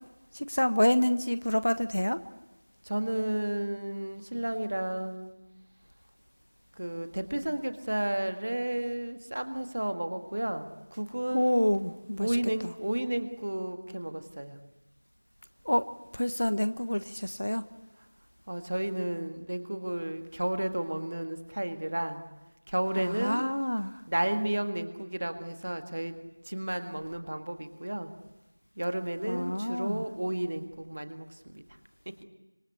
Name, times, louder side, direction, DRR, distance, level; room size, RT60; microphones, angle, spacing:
voice 1, 0.3-2.2 11.3-12.4 12.6-12.7 15.6-15.9 16.1-17.6 23.0-24.0 29.2-30.0, equal, 50° left, 12 dB, 1.2 m, -27 dB
voice 2, 2.9-5.3 6.8-11.6 12.2-14.6 18.5-22.2 22.7-23.4 24.1-26.1 26.5-28.1 28.8-31.6, right 1 dB, 30° right, 8 dB, 1.8 m, -32 dB
26.0 x 25.5 x 8.4 m, 1.0 s
figure-of-eight pair, 175°, 0 cm